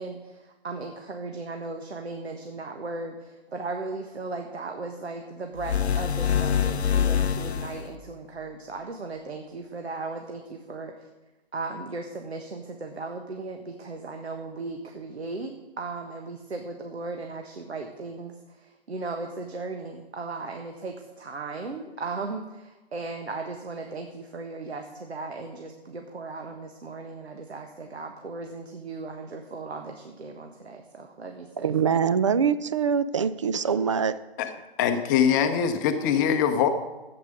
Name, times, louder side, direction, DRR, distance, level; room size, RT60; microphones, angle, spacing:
voice 1, 0.0-11.1 11.5-31.7, right 3 dB, 80° right, 4 dB, 1.5 m, -37 dB
sound 1, 5.6-8.0, left 8 dB, 90° left, 0.7 m, -25 dB
voice 2, 31.6-34.2, right 6 dB, 30° right, 16 dB, 0.4 m, -24 dB
voice 3, 34.8-36.7, left 8 dB, 20° left, 7 dB, 0.7 m, -22 dB
12.0 x 8.6 x 6.5 m, 1.1 s
hypercardioid pair, 145°, 32 cm